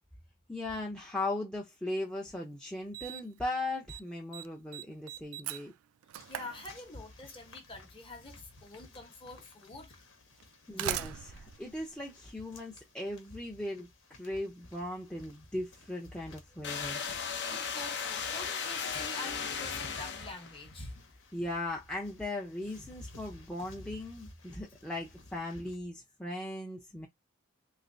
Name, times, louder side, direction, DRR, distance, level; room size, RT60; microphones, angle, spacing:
voice 1, 0.5-5.7 10.7-17.0 21.3-27.1, left 1 dB, 5° left, 0.5 m, -38 dB
Slam, 2.1-2.2 2.9-3.4 3.7-4.0 4.3-7.3 8.4-8.5 9.4-9.5 10.4-12.7, right 11 dB, 90° right, 0.3 m, -41 dB
sound 1, 6.1-25.8, left 1 dB, 75° left, 1.1 m, -54 dB
voice 2, 6.3-10.0 10.8-10.9 17.6-20.9, left 2 dB, 25° left, 0.9 m, -46 dB
sound 2, 16.6-20.7, left 6 dB, 55° left, 0.7 m, -36 dB
3.2 x 3.1 x 2.5 m
head